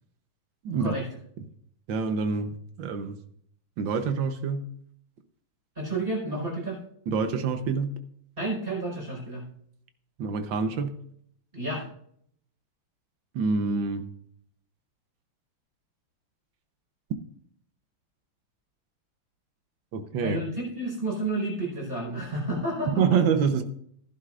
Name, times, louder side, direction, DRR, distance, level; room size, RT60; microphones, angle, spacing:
voice 1, 1.9-3.2 3.8-4.7 7.1-7.9 10.2-11.0 13.3-14.1 19.9-20.4 22.9-23.6, right 5 dB, 65° right, 9 dB, 1.6 m, -26 dB
voice 2, 5.8-6.8 8.4-9.5 11.5-11.8 20.2-23.2, right 2 dB, 25° right, -2 dB, 5.3 m, -31 dB
15.5 x 11.0 x 2.5 m, 0.66 s
omnidirectional pair, 2.4 m